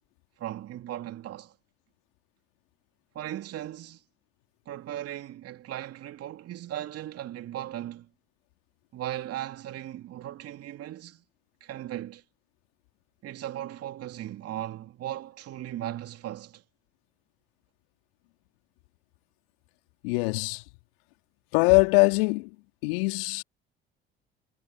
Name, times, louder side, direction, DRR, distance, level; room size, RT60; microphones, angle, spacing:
voice 1, 0.4-1.5 3.1-4.0 4.7-8.1 8.9-11.2 11.6-12.2 13.2-16.6, right 12 dB, 55° right, 2.9 m, -37 dB
voice 2, 20.0-20.6 21.5-22.6 22.8-23.4, left 30 dB, 75° left, 2.9 m, -22 dB
hypercardioid pair, 55°, 29 cm